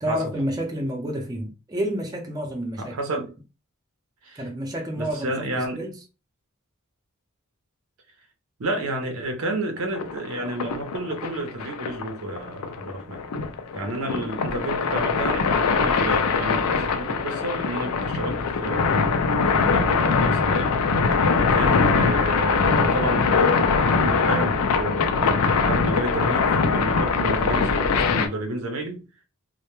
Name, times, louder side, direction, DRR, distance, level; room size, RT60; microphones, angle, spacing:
voice 1, 0.0-2.9 4.4-5.9, equal, 20° right, 0.5 m, -29 dB
voice 2, 2.8-3.3 4.2-4.5 4.9-5.8 8.6-13.2 13.7-19.0 19.5-20.8 21.4-29.0, right 1 dB, 75° right, 0.6 m, -30 dB
sound 1, 9.9-28.3, left 5 dB, 85° left, 0.4 m, -22 dB
2.1 x 2.1 x 3.0 m
head